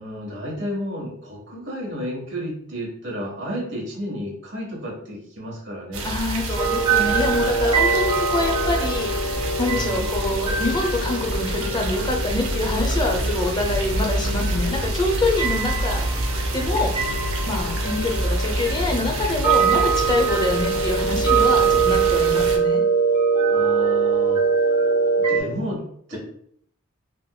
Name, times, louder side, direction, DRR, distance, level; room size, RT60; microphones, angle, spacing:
voice 1, 0.0-6.0 9.6-10.1 23.5-24.4 25.2-26.2, equal, 60° right, -2 dB, 1.1 m, -32 dB
sound 1, 5.9-22.6, right 1 dB, 80° right, 0.5 m, -27 dB
voice 2, 6.0-16.0 16.5-16.9 17.5-22.8, left 2 dB, 20° left, 1 dB, 0.5 m, -25 dB
sound 2, 6.6-25.4, right 5 dB, 20° right, 1.3 m, -23 dB
3.4 x 2.9 x 2.2 m, 0.65 s
head